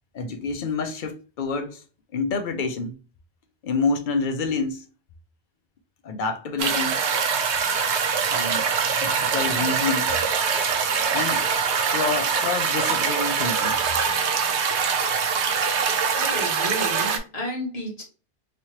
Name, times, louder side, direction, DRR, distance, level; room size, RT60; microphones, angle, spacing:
voice 1, 0.1-1.8 2.1-3.0 3.6-4.9 6.0-7.0 8.3-8.6 9.0-10.2 11.1-11.4 11.9-13.8, left 4 dB, 50° left, 0.7 m, -28 dB
sound 1, 6.6-17.2, right 6 dB, 80° right, 0.9 m, -23 dB
voice 2, 16.1-18.0, equal, 35° left, 1.3 m, -32 dB
3.2 x 2.9 x 2.8 m
omnidirectional pair, 1.2 m